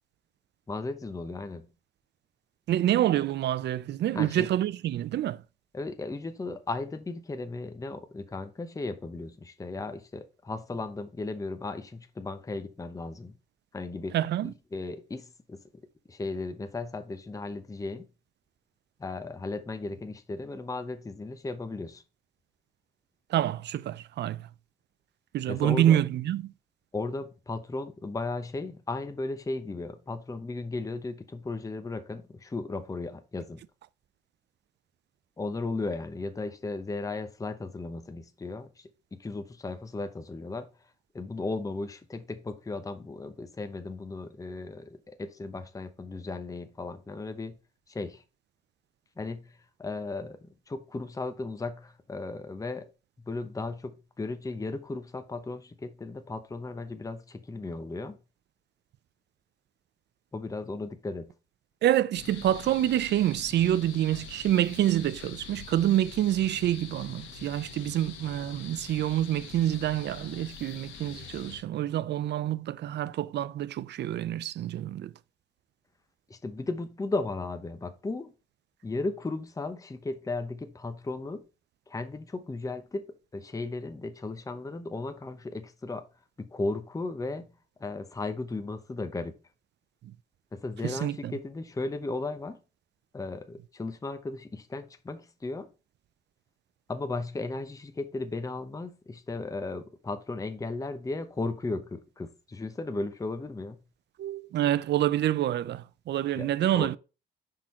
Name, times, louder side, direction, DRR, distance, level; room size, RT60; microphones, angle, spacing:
voice 1, 0.7-1.7 4.1-4.5 5.7-13.3 13.7-14.1 14.4-15.6 16.1-18.1 19.0-22.0 25.5-26.0 26.9-33.6 35.4-40.7 41.1-47.6 47.9-48.2 49.2-49.4 49.8-50.4 50.7-52.8 53.2-58.2 60.3-61.3 76.3-78.3 78.8-81.4 81.9-83.0 83.3-86.0 86.4-87.5 87.8-89.3 90.5-92.6 93.1-95.7 96.9-103.8 106.3-106.5 106.7-106.9, left 3 dB, 15° left, 0.8 m, -35 dB
voice 2, 2.7-5.4 14.1-14.5 23.3-24.4 25.3-26.4 61.8-75.1 90.8-91.3 104.2-107.0, right 12 dB, 60° right, 0.4 m, -27 dB
sound 1, 62.1-71.6, left 7 dB, 85° left, 1.0 m, -45 dB
6.0 x 3.8 x 4.3 m
cardioid pair, 90°, 20 cm